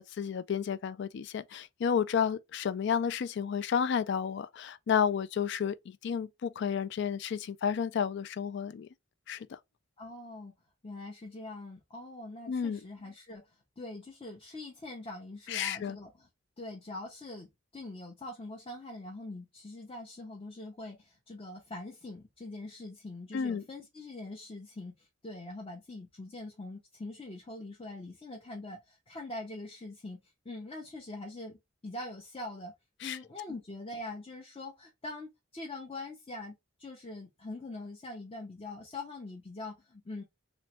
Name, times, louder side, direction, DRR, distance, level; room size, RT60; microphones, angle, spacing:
voice 1, 0.0-8.9 9.3-9.6 12.5-12.8 15.5-16.0 23.3-23.6 33.0-33.2, left 7 dB, 60° left, 0.3 m, -31 dB
voice 2, 10.0-10.5 10.8-13.4 13.8-16.3 16.6-17.5 17.7-30.2 30.4-31.6 31.8-32.7 33.0-40.2, left 2 dB, 30° left, 0.7 m, -43 dB
3.1 x 3.0 x 3.0 m
head